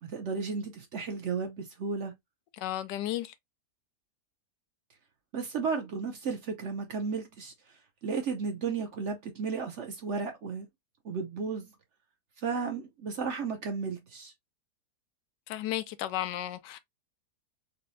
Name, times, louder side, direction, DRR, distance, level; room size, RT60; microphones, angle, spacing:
voice 1, 0.0-2.1 5.3-7.5 8.0-10.7 11.0-11.7 12.4-14.3, right 5 dB, 55° right, 0.9 m, -34 dB
voice 2, 2.6-3.3 15.5-16.8, left 13 dB, 90° left, 1.2 m, -33 dB
4.1 x 2.6 x 2.6 m
omnidirectional pair, 1.8 m